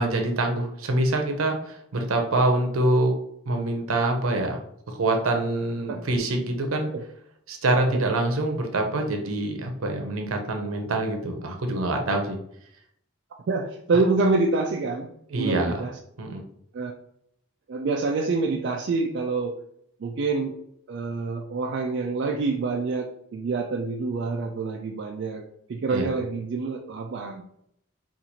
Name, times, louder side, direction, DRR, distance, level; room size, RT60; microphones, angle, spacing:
voice 1, 0.0-3.1 3.5-6.9 7.5-12.4 15.3-15.8 16.2-16.4 25.9-26.1, right 2 dB, 90° right, 4 dB, 0.7 m, -25 dB
voice 2, 13.5-15.1 15.4-16.0 16.7-16.9 17.7-19.6 20.0-20.6 20.9-27.4, right 3 dB, 55° right, 1 dB, 0.3 m, -27 dB
4.0 x 2.5 x 2.8 m, 0.72 s
head